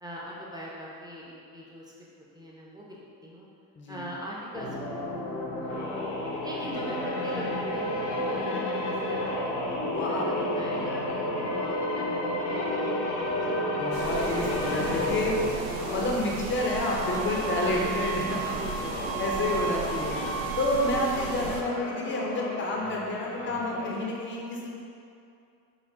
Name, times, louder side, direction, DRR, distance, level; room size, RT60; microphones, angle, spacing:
voice 1, 0.0-1.9 2.3-3.5 3.9-6.0 6.4-9.7 10.1-12.1 12.4-13.1 13.4-13.6 17.6-19.9 20.8-21.0, equal, 10° right, -5 dB, 0.7 m, -42 dB
voice 2, 3.8-4.1 9.9-10.4 13.8-15.5 15.8-20.2 20.6-24.7, left 2 dB, 25° left, -2 dB, 0.6 m, -29 dB
sound 1, 4.5-16.2 16.9-24.0, left 1 dB, 75° left, 0.9 m, -32 dB
sound 2, 13.9-21.6, right 5 dB, 80° right, 0.6 m, -36 dB
sound 3, 16.6-21.1, right 5 dB, 50° right, 0.8 m, -35 dB
4.0 x 2.3 x 3.4 m, 2.5 s
hypercardioid pair, 65°, 50 cm